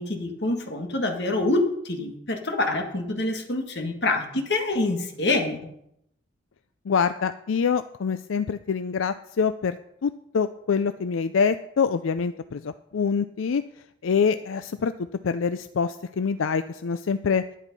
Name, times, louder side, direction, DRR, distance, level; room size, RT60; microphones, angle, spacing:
voice 1, 0.0-5.7, left 2 dB, 55° left, 3 dB, 1.8 m, -26 dB
voice 2, 6.9-9.8 10.0-13.6 14.0-14.9 15.2-17.4, left 6 dB, 85° left, 11 dB, 0.4 m, -25 dB
11.0 x 10.0 x 5.4 m, 0.78 s
head